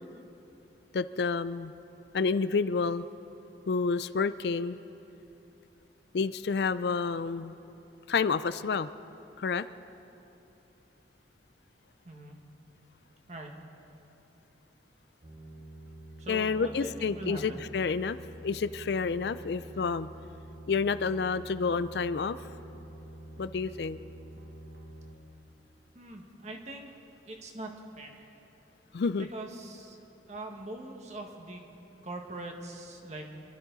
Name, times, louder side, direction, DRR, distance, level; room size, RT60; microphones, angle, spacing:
voice 1, 0.9-1.7 2.1-3.1 3.7-4.8 6.1-7.6 8.1-8.9 9.4-9.6 16.3-18.2 18.4-20.1 20.7-22.4 23.4-24.0 28.9-29.3, left 5 dB, 65° left, 13 dB, 0.4 m, -29 dB
voice 2, 12.1-12.4 13.3-13.5 16.2-17.6 26.0-26.9 27.3-27.7 28.0-28.2 29.1-30.0 30.3-31.6 32.0-33.3, right 1 dB, 40° right, 2 dB, 1.6 m, -42 dB
sound 1, 15.2-25.2, right 1 dB, 65° right, 2.1 m, -47 dB
26.5 x 12.5 x 4.0 m, 3.0 s
head